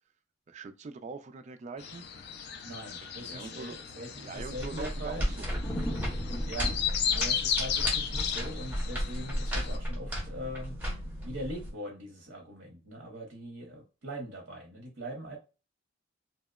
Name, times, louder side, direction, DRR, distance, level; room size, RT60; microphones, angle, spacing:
voice 1, 0.5-2.1 3.0-5.7, right 4 dB, 35° right, 0.3 m, -43 dB
sound 1, 1.8-9.8, left 8 dB, 60° left, 0.3 m, -35 dB
voice 2, 2.6-5.3 6.5-10.8 11.2-15.4, right 1 dB, 65° right, 0.7 m, -42 dB
sound 2, 4.4-11.7, equal, 10° right, 0.9 m, -34 dB
sound 3, 5.0-11.5, equal, 15° left, 0.6 m, -41 dB
2.7 x 2.0 x 2.3 m
head